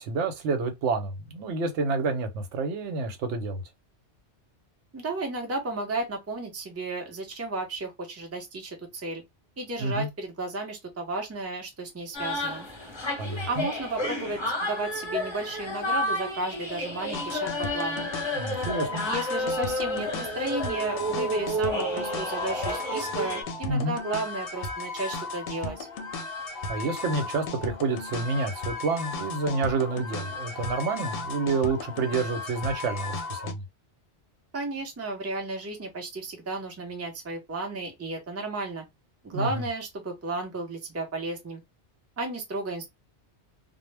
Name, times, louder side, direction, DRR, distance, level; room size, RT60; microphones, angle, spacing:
voice 1, 0.0-3.6 9.8-10.1 13.2-13.7 18.3-19.1 23.7-24.0 26.7-33.6 39.3-39.7, right 3 dB, 85° right, 0.9 m, -29 dB
voice 2, 4.9-9.2 9.6-12.7 13.5-18.1 19.0-25.9 34.5-38.8 39.2-41.6 42.2-42.9, right 2 dB, 20° right, 0.4 m, -33 dB
sound 1, 12.1-23.4, equal, 30° left, 0.7 m, -31 dB
sound 2, 17.1-33.5, left 3 dB, 65° left, 0.7 m, -36 dB
2.1 x 2.1 x 3.2 m
omnidirectional pair, 1.2 m